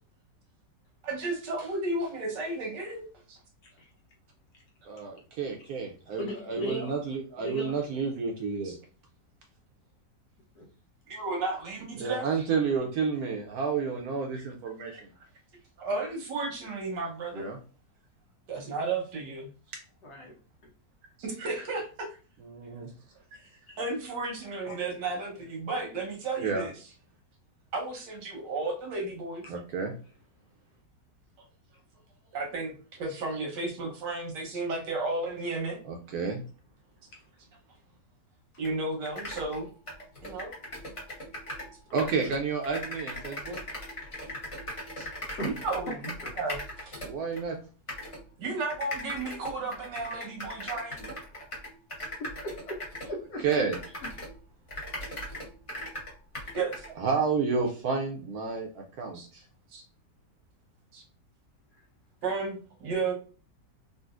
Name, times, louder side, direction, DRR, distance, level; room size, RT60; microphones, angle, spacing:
voice 1, 1.0-3.4 8.6-8.7 11.1-12.3 14.9-15.0 15.8-17.5 18.5-19.5 21.2-22.1 23.8-26.7 27.7-29.4 32.3-35.8 38.6-39.7 40.2-40.5 45.0-45.1 45.4-45.9 46.4-47.0 48.4-51.2 56.5-56.8 59.1-59.3 59.7-59.8 60.9-61.0 62.2-63.1, right 3 dB, 90° right, 1 dB, 1.6 m, -33 dB
voice 2, 4.9-8.7 12.0-15.1 17.3-17.6 22.4-22.9 26.4-26.7 29.5-29.9 35.8-36.4 41.9-43.6 47.0-47.6 53.4-53.8 57.0-59.4, right 5 dB, 70° right, 1 dB, 1.0 m, -30 dB
voice 3, 6.2-6.9 7.4-7.8 10.6-10.7 20.0-20.3 23.7-23.8 24.7-24.8 29.4-29.6 45.3-45.5 46.2-46.3 52.2-52.8 53.1-53.4, equal, 70° left, -1 dB, 1.3 m, -37 dB
sound 1, 38.6-38.7 39.0-41.7 42.0-47.4 47.9-48.2 48.7-54.4 54.7-56.9, left 1 dB, 25° left, 0.8 m, -39 dB
3.8 x 2.4 x 2.4 m, 0.37 s
omnidirectional pair, 1.8 m